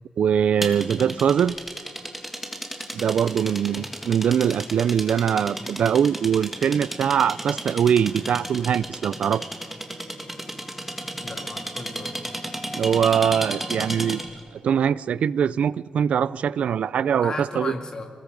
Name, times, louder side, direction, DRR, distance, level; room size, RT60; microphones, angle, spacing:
voice 1, 0.2-1.6 2.9-9.5 12.7-14.2 14.6-17.7, right 8 dB, 80° right, 0.4 m, -22 dB
sound 1, 0.6-14.4, right 1 dB, 10° right, 1.8 m, -33 dB
voice 2, 3.4-3.9 11.2-12.1 17.2-18.1, left 3 dB, 35° left, 2.0 m, -35 dB
26.0 x 20.0 x 5.3 m
wide cardioid pair, 165°, 2 cm